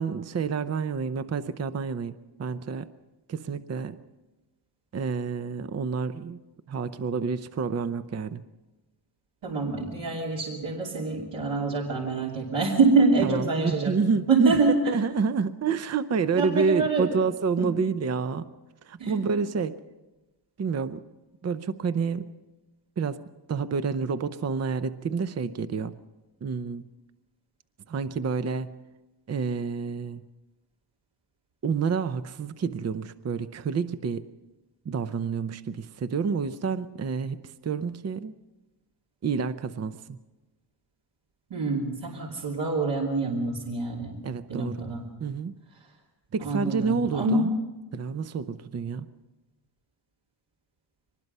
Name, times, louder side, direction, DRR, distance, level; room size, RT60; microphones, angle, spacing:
voice 1, 0.0-2.1 2.4-2.9 3.3-4.0 4.9-6.4 6.7-8.4 13.2-14.6 14.9-18.5 18.8-19.8 20.6-21.0 21.4-22.3 23.0-23.2 23.5-26.0 26.4-26.8 27.9-28.7 29.3-30.2 31.6-34.3 34.9-38.3 39.2-40.2 44.2-44.8 45.2-45.5 46.3-47.5 47.9-49.1, right 5 dB, 35° right, 12 dB, 0.6 m, -28 dB
voice 2, 9.4-13.9 14.3-14.8 16.3-17.1 17.6-17.7 19.0-19.2 41.5-44.2 44.5-45.0 46.4-47.4, right 3 dB, 75° right, -3 dB, 3.0 m, -25 dB
23.5 x 20.0 x 5.5 m, 1.1 s
wide cardioid pair, 125°, 44 cm